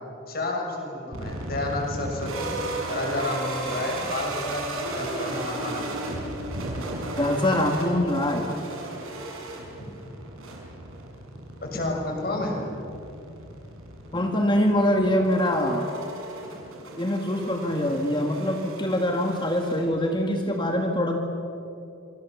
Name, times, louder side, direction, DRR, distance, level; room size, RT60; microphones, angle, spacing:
voice 1, 0.3-2.5 2.9-6.0 11.6-12.6, left 2 dB, 45° left, 1 dB, 6.2 m, -30 dB
sound 1, 1.1-20.3, right 2 dB, 75° right, 6.1 m, -35 dB
voice 2, 7.2-8.5 14.1-15.9 17.0-21.2, left 1 dB, 20° left, 3 dB, 2.1 m, -24 dB
27.0 x 25.0 x 7.4 m, 2.8 s
head